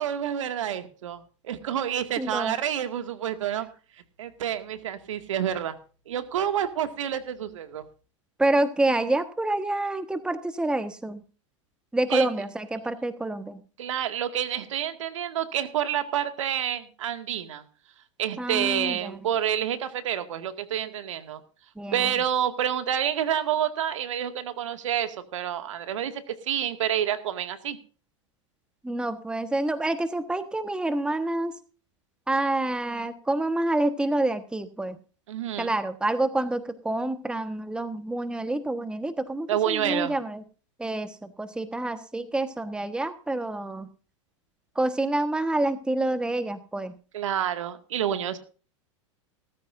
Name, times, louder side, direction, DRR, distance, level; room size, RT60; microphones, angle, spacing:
voice 1, 0.0-3.7 4.2-5.8 6.1-7.8 12.1-12.3 13.8-17.6 18.2-21.4 21.9-27.8 35.3-35.7 39.5-40.1 47.1-48.4, right 10 dB, 75° right, 8 dB, 2.0 m, -28 dB
voice 2, 2.2-2.5 8.4-11.2 11.9-13.6 18.4-19.3 21.8-22.1 28.8-31.5 32.3-35.0 35.6-40.4 40.8-43.9 44.7-46.9, right 2 dB, 5° right, 11 dB, 1.3 m, -27 dB
18.0 x 14.0 x 2.6 m, 0.37 s
hypercardioid pair, 100°, 16 cm